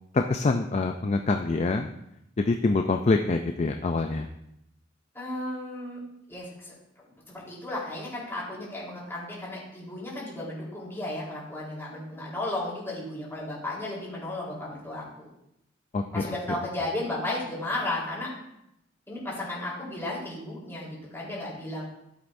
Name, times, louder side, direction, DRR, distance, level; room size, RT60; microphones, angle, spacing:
voice 1, 0.1-1.9 2.4-4.3 15.9-16.6, left 3 dB, 35° left, 5 dB, 0.4 m, -25 dB
voice 2, 5.1-6.0 6.3-6.7 7.0-15.3 16.1-18.3 19.1-21.8, left 1 dB, 10° left, -6 dB, 3.9 m, -34 dB
13.5 x 7.9 x 2.6 m, 0.81 s
head